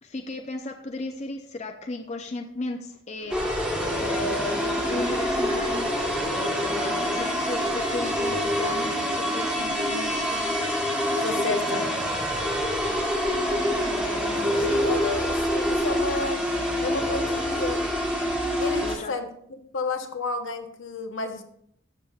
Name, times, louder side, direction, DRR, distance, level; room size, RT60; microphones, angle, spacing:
voice 1, 0.0-3.4 4.0-4.5 4.9-5.9 6.8-10.7 12.8-13.0 13.3-13.6 18.8-19.1, left 2 dB, 35° left, 0.5 m, -35 dB
sound 1, 3.2-10.3, right 1 dB, 65° right, 1.3 m, -38 dB
sound 2, 3.3-19.0, equal, 5° right, 1.3 m, -27 dB
sound 3, 4.3-10.0 10.3-16.2, left 1 dB, 30° right, 1.2 m, -31 dB
voice 2, 11.2-11.9 14.3-16.5 16.8-17.9 18.6-21.4, left 3 dB, 70° left, 0.9 m, -32 dB
13.0 x 6.9 x 2.4 m
head